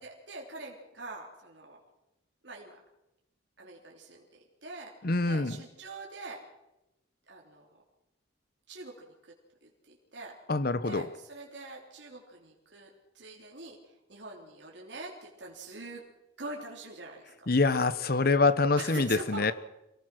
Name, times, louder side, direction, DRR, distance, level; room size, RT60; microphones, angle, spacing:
voice 1, 0.0-1.8 2.4-2.8 3.6-6.4 7.3-7.8 8.7-9.3 9.6-10.4 10.8-16.1 16.4-17.5 18.7-19.5, right 2 dB, 65° right, -2 dB, 3.3 m, -44 dB
voice 2, 5.0-5.6 10.5-11.1 17.5-19.5, left 3 dB, 50° left, 15 dB, 0.9 m, -25 dB
25.5 x 18.0 x 6.2 m, 0.91 s
head